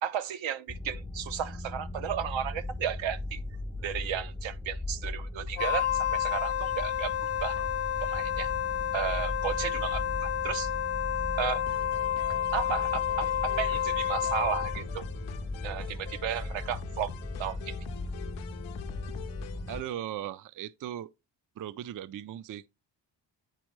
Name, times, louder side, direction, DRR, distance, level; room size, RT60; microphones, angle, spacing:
voice 1, 0.0-3.4 3.8-7.6 8.0-8.5 8.9-10.7 11.4-11.6 12.5-15.1 15.6-17.1 17.4-17.8, right 9 dB, 75° right, 0.8 m, -34 dB
sound 1, 0.7-19.8, left 2 dB, 10° left, 0.5 m, -38 dB
Wind instrument woodwind instrument, 5.5-14.8, left 10 dB, 60° left, 0.8 m, -30 dB
sound 2, 11.7-19.9, left 10 dB, 90° left, 0.6 m, -46 dB
voice 2, 19.7-21.1 21.6-22.7, right 11 dB, 45° right, 0.4 m, -38 dB
9.0 x 4.3 x 3.1 m
cardioid pair, 75°, 46 cm